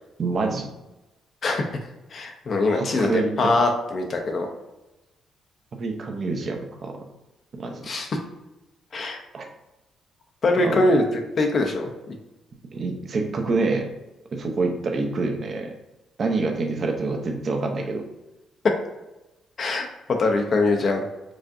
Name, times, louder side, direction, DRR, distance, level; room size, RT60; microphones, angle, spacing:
voice 1, 0.2-0.7 2.7-3.5 5.8-7.0 7.5-7.8 9.3-9.5 10.6-10.9 12.7-13.9 14.3-15.7 16.2-18.0, right 3 dB, 45° right, 3 dB, 0.7 m, -26 dB
voice 2, 2.1-4.5 7.8-8.1 8.9-9.2 10.4-11.1 11.4-11.9 19.6-19.9 20.2-21.0, left 2 dB, 50° left, 3 dB, 0.5 m, -22 dB
4.8 x 2.5 x 2.6 m, 0.99 s
cardioid pair, 90°, 0 cm